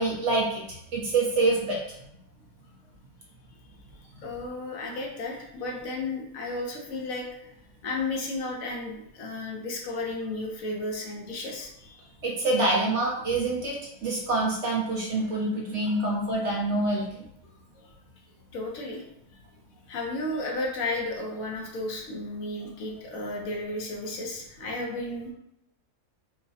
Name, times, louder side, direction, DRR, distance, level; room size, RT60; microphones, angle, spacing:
voice 1, 0.0-1.8 12.2-17.2, right 2 dB, 60° right, -2 dB, 0.9 m, -26 dB
voice 2, 4.2-7.5 7.8-12.1 15.8-15.9 17.8-17.9 18.5-19.1 19.9-25.3, left 2 dB, 70° left, 0 dB, 1.1 m, -33 dB
4.7 x 2.2 x 2.7 m, 0.79 s
omnidirectional pair, 1.6 m